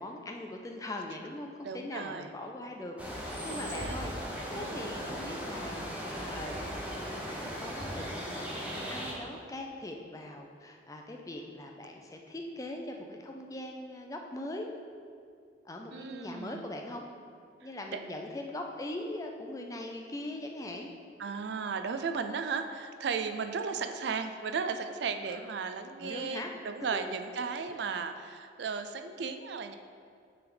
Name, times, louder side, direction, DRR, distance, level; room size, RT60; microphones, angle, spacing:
voice 1, 0.0-4.1 4.5-6.6 7.3-14.7 15.6-17.0 17.6-20.9 25.3-25.4 26.0-26.5 26.9-27.0, left 1 dB, 20° left, 2 dB, 0.4 m, -41 dB
voice 2, 1.6-2.3 3.5-4.0 4.5-4.8 15.9-16.6 17.9-18.0 21.2-29.7, right 5 dB, 70° right, 8 dB, 0.4 m, -35 dB
sound 1, 3.0-9.1, equal, 5° right, 0.8 m, -37 dB
8.6 x 3.4 x 3.8 m, 2.3 s
head